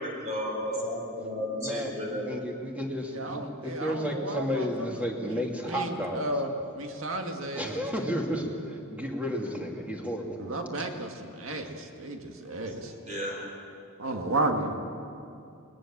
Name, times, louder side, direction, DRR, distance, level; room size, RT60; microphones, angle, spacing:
voice 1, 0.0-2.2 12.8-13.5, equal, 35° right, -1 dB, 4.5 m, -33 dB
voice 2, 1.6-6.2 7.6-10.4, equal, 5° right, 0 dB, 2.6 m, -32 dB
voice 3, 3.1-8.5 10.4-12.9 14.0-14.8, right 2 dB, 70° right, 4 dB, 2.0 m, -33 dB
21.5 x 20.5 x 7.4 m, 2.5 s
head